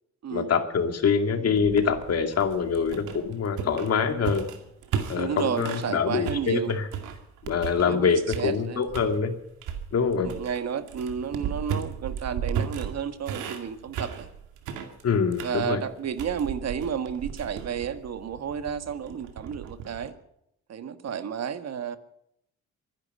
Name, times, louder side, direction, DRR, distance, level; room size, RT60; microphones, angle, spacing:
voice 1, 0.3-4.5 5.1-6.9 7.5-9.3 9.9-10.3 15.0-15.8, left 6 dB, 55° left, 6 dB, 2.4 m, -25 dB
sound 1, 1.6-5.9 6.2-8.0 8.3-9.1 9.6-20.1, right 7 dB, 90° right, 2.2 m, -35 dB
voice 2, 5.1-6.7 7.9-8.9 10.2-14.3 15.4-20.1 20.7-22.0, right 7 dB, 60° right, 10 dB, 1.6 m, -31 dB
23.5 x 10.5 x 5.6 m, 0.77 s
cardioid pair, 90°, 30 cm